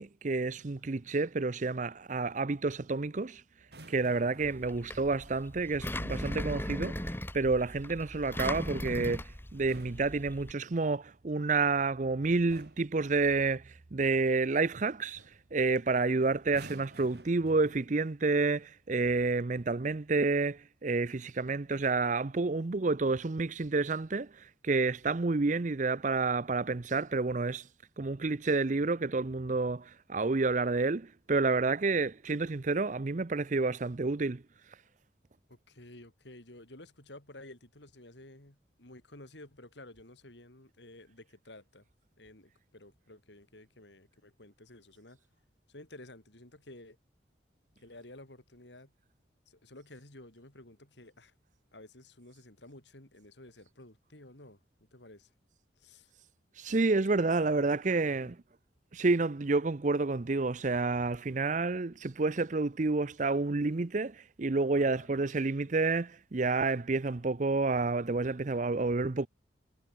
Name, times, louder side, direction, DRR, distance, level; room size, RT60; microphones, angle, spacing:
voice 1, 0.0-3.4 3.9-7.0 7.3-9.2 9.5-15.2 15.5-24.3 24.6-27.6 28.0-34.4 56.6-58.4 58.9-69.3, right 3 dB, 40° right, 0.6 m, -29 dB
sound 1, 3.6-4.6 6.7-7.3 9.5-10.8 11.9-12.1 12.5-13.0 14.7-14.8 15.1-15.5 16.4-18.1 19.0-19.3, right 1 dB, 60° right, 8.0 m, -53 dB
voice 2, 4.2-4.7 15.9-16.4 35.5-41.9 42.2-45.2 45.7-47.0 47.8-48.9 49.5-51.3 51.7-54.6 54.9-55.3 55.8-56.1 57.4-57.7 58.0-58.3 64.7-65.2, left 1 dB, 70° left, 4.2 m, -53 dB
Engine, 4.4-10.5, left 1 dB, 10° left, 2.0 m, -38 dB
head